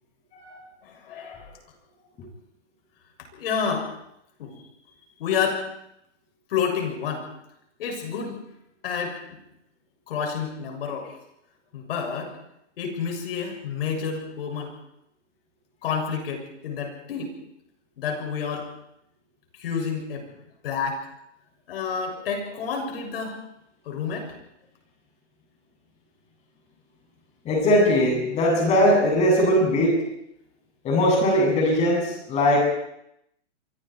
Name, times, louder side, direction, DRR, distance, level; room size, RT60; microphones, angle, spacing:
voice 1, 0.8-1.6 3.4-3.9 4.4-4.6 5.2-5.7 6.5-7.3 7.8-8.4 8.8-9.4 10.1-11.2 11.7-12.4 12.8-14.7 15.8-17.4 18.0-18.7 19.5-20.4 20.6-21.0 21.7-23.4 23.9-24.3, left 6 dB, 50° left, 3 dB, 7.0 m, -29 dB
voice 2, 27.4-30.0 30.8-32.6, equal, 20° left, 0 dB, 7.9 m, -20 dB
27.5 x 24.5 x 4.7 m, 0.78 s
hypercardioid pair, 160°, 36 cm